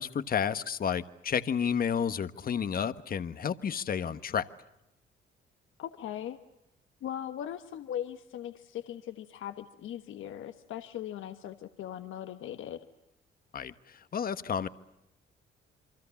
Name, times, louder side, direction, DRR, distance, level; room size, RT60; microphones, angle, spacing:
voice 1, 0.0-4.4 13.5-14.7, left 7 dB, 45° left, 1.3 m, -31 dB
voice 2, 5.8-6.4 7.0-12.8, left 10 dB, 80° left, 1.4 m, -39 dB
28.5 x 24.0 x 7.1 m
cardioid pair, 90°, 20 cm